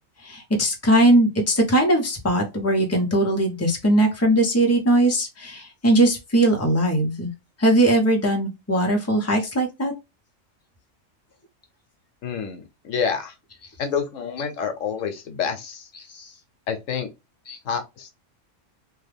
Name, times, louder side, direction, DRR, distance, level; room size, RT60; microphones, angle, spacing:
voice 1, 0.2-7.3 7.6-9.9 16.1-16.3 17.5-17.6, right 1 dB, 15° left, 0.8 m, -20 dB
voice 2, 12.2-13.3 13.8-15.9 16.7-17.1 17.6-18.1, left 6 dB, 90° left, 1.1 m, -28 dB
3.3 x 2.3 x 3.4 m
omnidirectional pair, 1.3 m